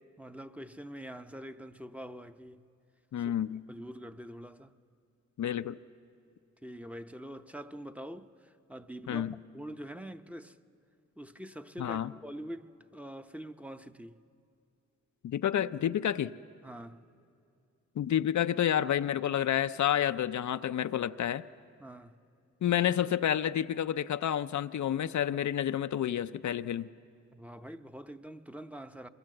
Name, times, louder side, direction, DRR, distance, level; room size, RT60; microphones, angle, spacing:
voice 1, 0.2-2.6 3.7-4.7 6.6-9.3 9.5-10.6 11.2-14.2 16.6-17.1 21.8-22.2 27.3-29.1, equal, 5° right, 0.7 m, -45 dB
voice 2, 3.1-3.6 5.4-5.8 9.1-9.4 11.8-12.1 15.2-16.4 18.0-21.4 22.6-26.9, left 10 dB, 75° left, 0.5 m, -29 dB
23.5 x 21.5 x 7.7 m
cardioid pair, 65°, 30 cm